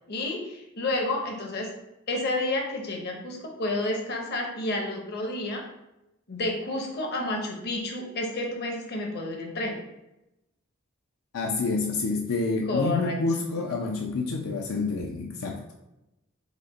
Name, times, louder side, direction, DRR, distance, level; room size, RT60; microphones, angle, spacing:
voice 1, 0.1-1.7 2.1-5.6 6.3-9.8 12.7-13.2, left 2 dB, 50° left, 1 dB, 0.8 m, -30 dB
voice 2, 11.3-15.6, left 3 dB, 85° left, 1 dB, 0.5 m, -28 dB
5.0 x 2.2 x 3.9 m, 0.92 s
head